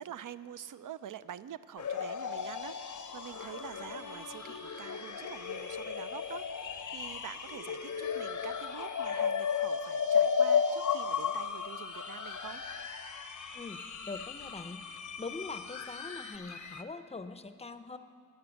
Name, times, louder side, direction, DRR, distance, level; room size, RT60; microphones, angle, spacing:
voice 1, 0.0-12.6, right 10 dB, 80° right, 15 dB, 0.5 m, -46 dB
sound 1, 1.8-16.8, left 7 dB, 70° left, 0.6 m, -34 dB
sound 2, 2.4-16.4, right 2 dB, 25° right, 0.6 m, -52 dB
voice 2, 13.5-18.0, left 3 dB, 20° left, 11 dB, 0.5 m, -43 dB
12.5 x 10.0 x 6.9 m, 2.1 s
wide cardioid pair, 115°, 31 cm